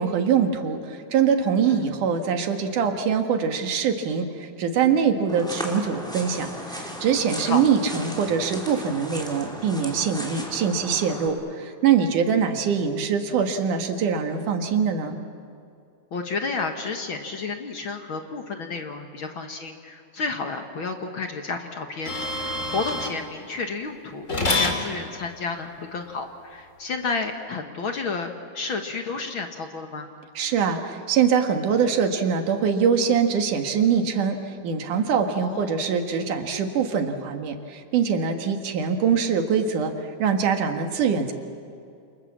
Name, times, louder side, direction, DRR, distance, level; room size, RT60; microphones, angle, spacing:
voice 1, 0.0-15.2 30.3-39.9 40.2-41.3, right 6 dB, 85° right, 5 dB, 3.3 m, -23 dB
sound 1, 5.3-11.3, equal, ahead, 3.6 m, -36 dB
voice 2, 16.1-30.1 35.3-35.8, left 4 dB, 50° left, 5 dB, 1.8 m, -31 dB
sound 2, 22.1-23.2 24.3-24.8 27.2-27.3, left 2 dB, 25° left, 2.7 m, -26 dB
29.0 x 27.5 x 7.5 m, 2.4 s
omnidirectional pair, 3.5 m